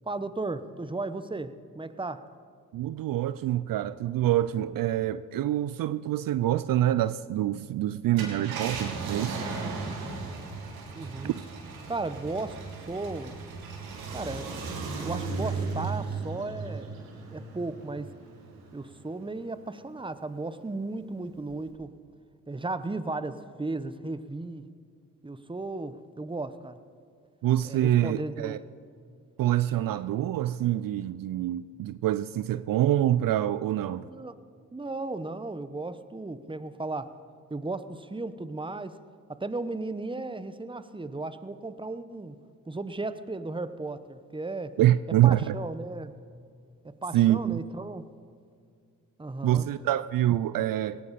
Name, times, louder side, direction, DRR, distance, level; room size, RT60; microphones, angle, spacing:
voice 1, 0.1-2.2 10.9-11.3 11.9-13.4 14.1-18.1 18.7-21.9 22.5-24.7 25.2-26.8 27.6-28.6 34.0-34.3 34.7-37.2 37.5-39.0 39.3-42.3 42.7-44.8 45.2-46.1 46.8-48.0 49.2-49.7, right 2 dB, 15° right, 12 dB, 0.9 m, -35 dB
voice 2, 2.7-9.4 9.6-9.8 11.2-11.3 27.4-28.6 29.4-34.1 44.8-45.6 47.1-47.6 49.4-51.0, right 13 dB, 65° right, 15 dB, 0.5 m, -26 dB
Car, 8.0-18.9 19.3-19.4 21.5-21.7, right 4 dB, 85° right, 2.3 m, -36 dB
18.0 x 15.0 x 4.2 m, 2.3 s
supercardioid pair, 45°, 36 cm